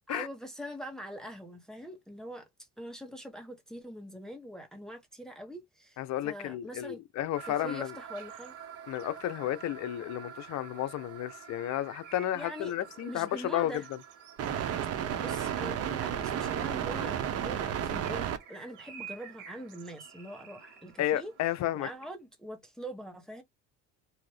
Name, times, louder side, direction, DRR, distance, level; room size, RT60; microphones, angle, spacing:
voice 1, 0.1-2.5 2.8-6.0 6.2-7.0 7.5-8.5 12.3-13.9 14.9-21.3 21.7-23.4, equal, ahead, 1.0 m, -43 dB
voice 2, 6.0-7.9 8.9-13.7 21.0-21.9, left 13 dB, 55° left, 0.6 m, -32 dB
sound 1, 7.4-18.4, right 9 dB, 50° right, 0.7 m, -36 dB
sound 2, 8.1-22.2, right 7 dB, 70° right, 1.1 m, -54 dB
2.7 x 2.5 x 3.2 m
supercardioid pair, 100°, 33 cm